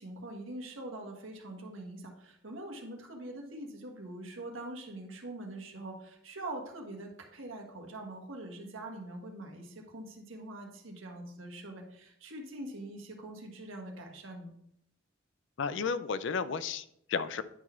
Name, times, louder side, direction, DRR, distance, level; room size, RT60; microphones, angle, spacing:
voice 1, 0.0-14.5, right 1 dB, 85° right, 2 dB, 1.5 m, -43 dB
voice 2, 15.6-17.4, left 5 dB, 65° left, 14 dB, 0.4 m, -33 dB
9.9 x 4.1 x 4.4 m, 0.74 s
head